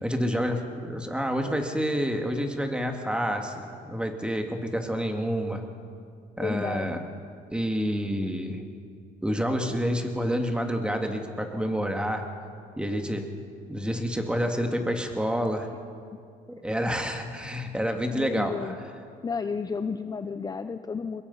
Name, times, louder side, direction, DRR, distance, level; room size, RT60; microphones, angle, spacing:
voice 1, 0.0-5.6 6.4-7.0 7.5-8.6 9.2-12.3 12.8-13.3 13.7-15.7 16.5-18.8, equal, 5° right, 4 dB, 2.3 m, -28 dB
voice 2, 6.4-6.9 16.1-16.2 18.1-18.8 19.2-21.2, left 5 dB, 25° left, 9 dB, 0.7 m, -32 dB
23.0 x 21.5 x 5.7 m, 2.2 s
cardioid pair, 110°, 17 cm